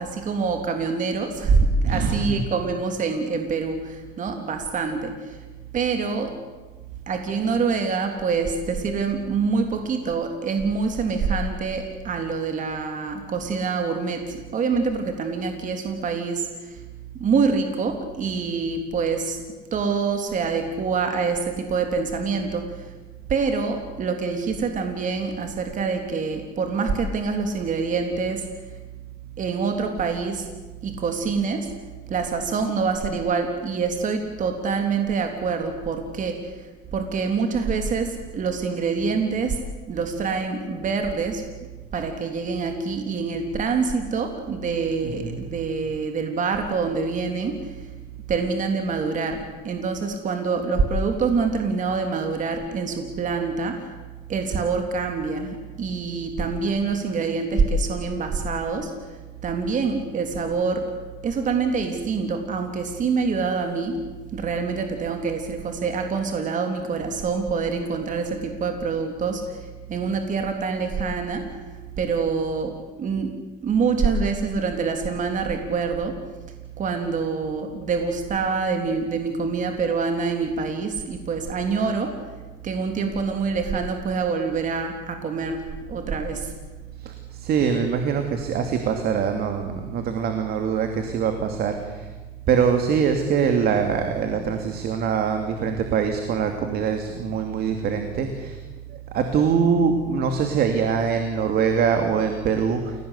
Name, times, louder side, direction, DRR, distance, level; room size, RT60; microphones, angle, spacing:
voice 1, 0.0-5.4 5.7-6.3 7.1-16.8 17.2-19.4 19.7-22.9 23.3-28.4 29.4-30.5 30.8-31.7 32.1-39.6 39.9-41.4 41.9-47.9 48.3-53.8 54.3-58.9 59.4-60.8 61.2-64.0 64.3-71.5 72.0-72.7 73.0-73.3 73.6-76.1 76.8-82.1 82.6-85.6 85.9-86.5, right 4 dB, 50° right, 5 dB, 3.3 m, -25 dB
voice 2, 1.8-2.4 45.0-45.4 87.0-92.1 92.5-98.6 99.1-103.0, right 6 dB, 65° right, 6 dB, 2.6 m, -23 dB
29.5 x 18.0 x 8.3 m, 1.2 s
cardioid pair, 110°, 17 cm